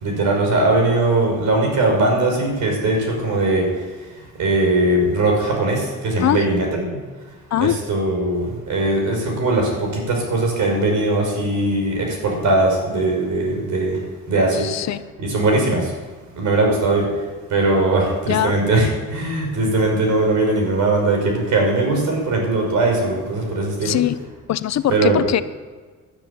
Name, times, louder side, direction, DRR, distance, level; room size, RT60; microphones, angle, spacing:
voice 1, 0.0-3.7 4.4-7.0 7.6-14.0 14.3-14.7 15.2-15.9 16.4-17.1 17.5-24.0 24.9-25.2, right 2 dB, 75° right, 1 dB, 5.3 m, -20 dB
voice 2, 14.5-15.0 18.3-18.5 23.8-24.2 24.5-25.4, left 11 dB, 60° left, 14 dB, 0.7 m, -21 dB
12.0 x 10.5 x 8.7 m, 1.4 s
cardioid pair, 90°, 30 cm